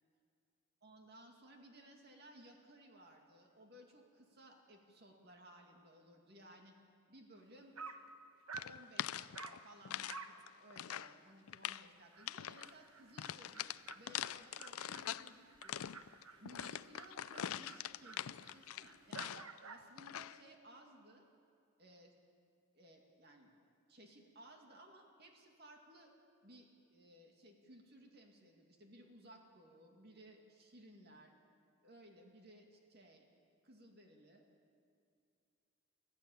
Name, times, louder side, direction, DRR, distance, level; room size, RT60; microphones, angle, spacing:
voice 1, 0.8-6.7 7.1-7.8 8.6-15.9 16.4-19.3 19.6-21.3 21.8-22.1 22.7-23.5 23.9-26.1 26.4-31.3 31.8-33.3 33.6-34.4, right 1 dB, 50° right, 2 dB, 2.3 m, -60 dB
Dog, 7.4-7.5 7.7-8.1 8.5-8.8 9.3-9.6 10.1-10.4 10.8-10.9 11.3-11.4 11.7-11.8 12.1-19.9, right 5 dB, 85° right, 1.2 m, -53 dB
sound 1, 8.5-10.2 10.5-11.1 11.5-11.9 12.3-12.7 13.2-15.3 15.6-19.6 20.0-20.4, left 10 dB, 90° left, 0.4 m, -43 dB
24.5 x 15.0 x 7.2 m, 2.4 s
head